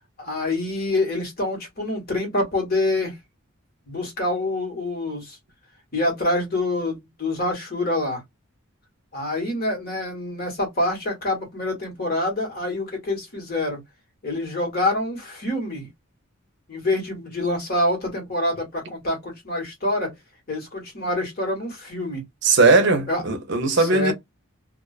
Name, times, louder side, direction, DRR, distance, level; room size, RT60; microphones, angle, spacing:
voice 1, 0.2-3.1 3.9-5.4 5.9-8.2 9.1-13.8 14.2-15.9 16.7-20.1 20.5-22.2 23.1-23.2 23.7-24.1, left 2 dB, 45° left, 1.2 m, -26 dB
voice 2, 22.4-24.1, right 3 dB, 55° right, 0.6 m, -18 dB
2.3 x 2.3 x 2.3 m
head